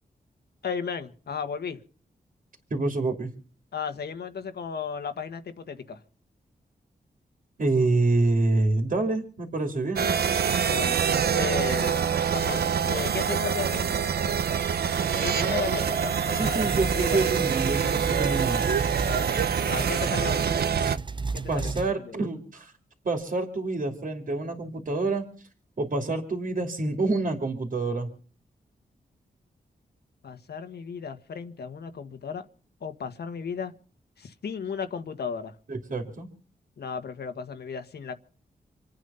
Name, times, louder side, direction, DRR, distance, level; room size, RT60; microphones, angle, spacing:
voice 1, 0.6-1.8 3.7-6.0 10.6-11.0 11.3-12.0 12.3-13.9 15.1-16.7 16.9-17.3 19.1-20.5 21.3-21.7 22.1-22.2 30.2-32.4 32.8-33.7 34.2-35.6 36.8-38.1, left 6 dB, 75° left, 1.6 m, -34 dB
voice 2, 2.7-3.3 7.6-10.2 16.3-18.6 21.5-22.7 23.0-25.2 25.8-28.1 35.7-36.3, right 2 dB, 55° right, 3.0 m, -27 dB
sound 1, 10.0-21.0, right 7 dB, 70° right, 0.8 m, -25 dB
sound 2, 16.4-21.9, right 4 dB, 30° right, 0.7 m, -33 dB
26.5 x 9.3 x 5.7 m
cardioid pair, 70°, 17 cm